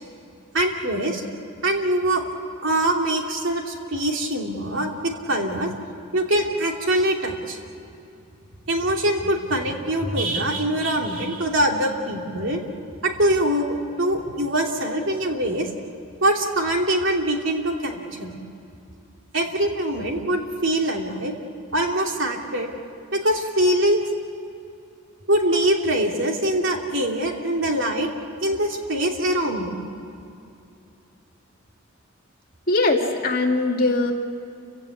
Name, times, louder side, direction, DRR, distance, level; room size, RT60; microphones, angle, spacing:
voice 1, 0.5-1.2 1.6-2.3 2.6-5.7 6.1-7.6 8.7-12.6 13.0-15.7 16.2-18.3 19.3-21.3 21.7-22.7 23.1-24.0 25.3-28.1 28.4-29.7, right 1 dB, 65° right, 1 dB, 2.9 m, -23 dB
voice 2, 32.7-34.1, left 2 dB, 45° left, 1 dB, 2.4 m, -21 dB
29.5 x 16.5 x 8.6 m, 2.7 s
head